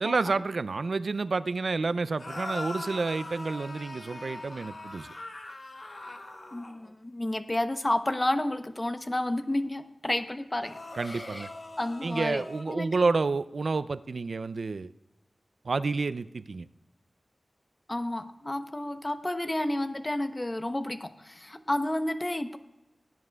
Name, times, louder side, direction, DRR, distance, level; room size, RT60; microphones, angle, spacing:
voice 1, 0.0-5.1 11.0-11.5 12.0-14.9 15.6-16.7, right 3 dB, 70° right, 15 dB, 0.4 m, -29 dB
sound 1, 2.2-6.9 10.6-12.6, left 2 dB, 55° left, 1.3 m, -41 dB
voice 2, 6.5-11.5 11.8-12.9 17.9-22.6, left 1 dB, 25° left, 10 dB, 0.7 m, -31 dB
18.0 x 9.7 x 2.3 m, 0.96 s
wide cardioid pair, 80°, 0 cm